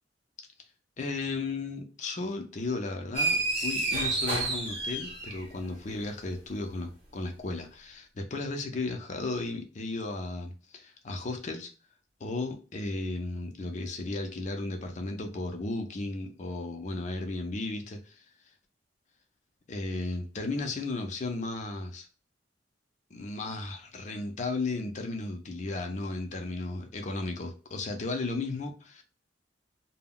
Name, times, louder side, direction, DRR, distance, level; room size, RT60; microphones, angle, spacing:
voice 1, 1.0-11.7 12.2-18.2 19.7-22.1 23.1-29.0, left 3 dB, 40° left, 0.5 m, -35 dB
sound 1, 3.1-5.7, right 3 dB, 35° right, 0.8 m, -29 dB
2.2 x 2.0 x 3.7 m
head